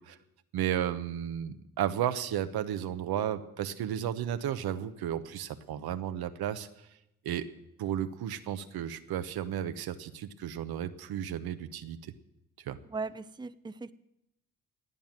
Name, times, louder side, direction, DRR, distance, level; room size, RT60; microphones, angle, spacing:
voice 1, 0.5-6.7 7.2-7.5 7.8-12.1 12.6-12.8, right 10 dB, 75° right, 10 dB, 1.0 m, -33 dB
voice 2, 12.9-13.9, right 4 dB, 10° right, 13 dB, 0.7 m, -38 dB
16.5 x 8.8 x 7.5 m, 0.84 s
supercardioid pair, 50°, 38 cm